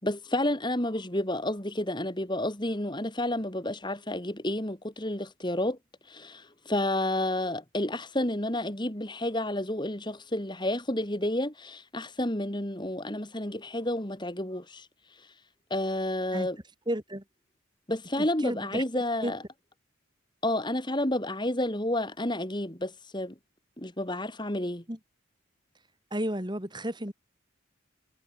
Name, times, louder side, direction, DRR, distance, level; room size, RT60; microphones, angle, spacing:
voice 1, 0.0-5.8 6.1-14.9 15.2-15.3 15.7-16.6 17.9-19.4 20.4-23.3 23.8-24.8, left 1 dB, 20° left, 3.2 m, -30 dB
voice 2, 16.9-17.2 18.2-18.8 19.2-19.3 24.9-25.0 26.1-27.1, right 1 dB, 20° right, 3.8 m, -32 dB
head